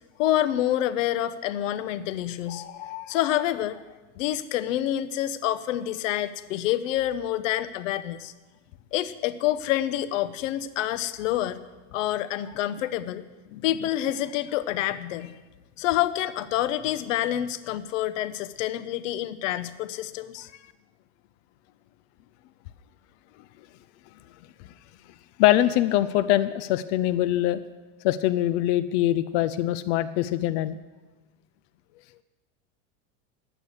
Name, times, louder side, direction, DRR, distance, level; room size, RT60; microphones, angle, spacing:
voice 1, 0.2-3.8 4.2-8.3 8.9-11.6 11.9-13.2 13.6-15.3 15.8-20.5, left 13 dB, 90° left, 13 dB, 0.9 m, -27 dB
voice 2, 25.4-27.6 28.0-30.8, left 13 dB, 60° left, 12 dB, 0.6 m, -23 dB
11.0 x 8.7 x 8.1 m, 1.2 s
supercardioid pair, 150°, 37 cm